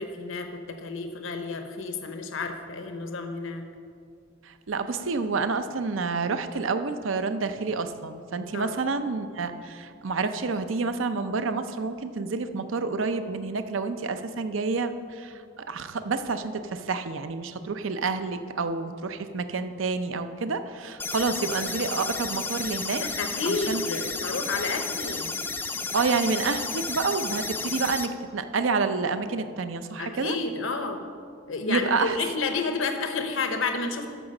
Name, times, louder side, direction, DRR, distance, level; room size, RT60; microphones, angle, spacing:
voice 1, 0.0-3.7 8.5-8.7 23.0-25.3 30.0-31.0 31.5-34.1, left 4 dB, 75° left, 5 dB, 0.8 m, -30 dB
voice 2, 4.4-23.0 23.5-23.8 25.9-30.4 31.7-32.2, right 4 dB, 75° right, 10 dB, 0.6 m, -29 dB
sound 1, 21.0-28.1, left 4 dB, 10° left, 0.4 m, -32 dB
13.0 x 4.9 x 6.4 m, 2.2 s
head